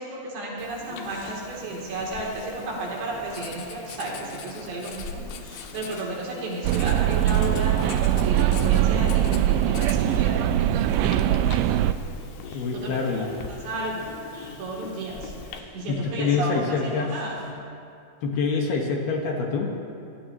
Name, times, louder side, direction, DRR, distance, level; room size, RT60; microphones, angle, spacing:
voice 1, 0.0-5.4 5.7-7.7 8.1-11.5 12.7-14.0 14.6-15.3 15.7-17.4, right 2 dB, 70° right, -4 dB, 5.2 m, -33 dB
Writing, 0.6-15.6, left 7 dB, 85° left, 3.4 m, -43 dB
sound 1, 0.8-17.5, left 1 dB, 15° left, 3.5 m, -46 dB
sound 2, 6.6-11.9, right 11 dB, 85° right, 2.8 m, -22 dB
voice 2, 12.5-13.3 15.9-17.1 18.2-19.7, left 5 dB, 65° left, 0 dB, 3.2 m, -26 dB
24.5 x 18.5 x 3.1 m, 2.5 s
omnidirectional pair, 5.3 m